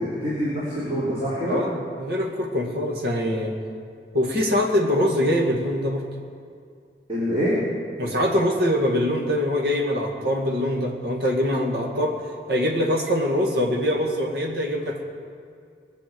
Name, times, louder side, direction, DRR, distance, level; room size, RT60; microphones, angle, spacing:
voice 1, 0.0-1.6 7.1-7.5, equal, 30° right, -9 dB, 3.3 m, -25 dB
voice 2, 1.5-3.6 4.1-6.1 8.0-12.2 12.5-15.0, left 1 dB, 65° right, 1 dB, 1.9 m, -23 dB
20.5 x 7.0 x 7.8 m, 2.3 s
head